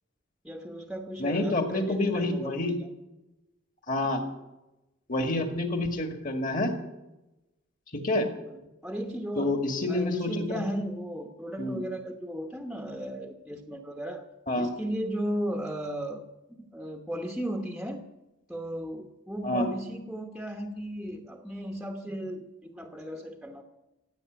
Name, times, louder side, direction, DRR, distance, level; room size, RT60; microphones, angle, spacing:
voice 1, 0.4-2.9 8.5-9.6 9.9-14.2 14.6-16.3 16.7-18.0 18.5-23.6, equal, ahead, 3 dB, 1.0 m, -35 dB
voice 2, 1.2-2.7 3.9-4.2 5.1-6.7 7.9-8.3 9.4-10.6 11.6-11.8 14.5-14.7 19.4-19.7, left 2 dB, 40° left, 5 dB, 2.0 m, -28 dB
16.0 x 8.4 x 8.1 m, 0.98 s
head